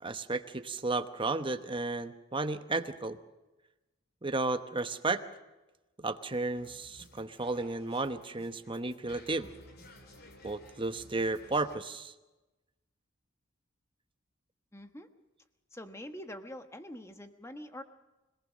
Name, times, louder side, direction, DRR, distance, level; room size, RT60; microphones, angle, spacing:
voice 1, 0.0-3.2 4.2-5.2 6.0-9.5 10.4-12.1, right 3 dB, 25° right, 10 dB, 1.0 m, -33 dB
sound 1, 6.6-11.8, left 1 dB, 50° left, 2.8 m, -55 dB
voice 2, 14.7-15.1 15.7-17.8, left 1 dB, 15° left, 8 dB, 1.3 m, -45 dB
25.5 x 19.0 x 6.3 m, 1.1 s
head